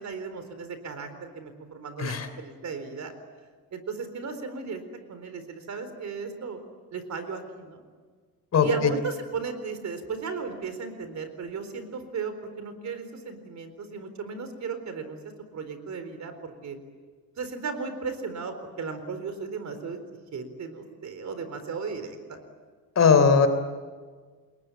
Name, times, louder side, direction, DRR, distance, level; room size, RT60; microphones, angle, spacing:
voice 1, 0.0-3.1 3.7-4.8 5.1-6.6 6.9-7.8 8.6-15.2 15.5-16.8 17.4-20.0 20.3-22.2, right 5 dB, 50° right, 9 dB, 4.1 m, -35 dB
voice 2, 8.5-8.9 22.9-23.5, left 5 dB, 45° left, 9 dB, 3.3 m, -19 dB
29.5 x 21.5 x 9.2 m, 1.5 s
cardioid pair, 140°, 36 cm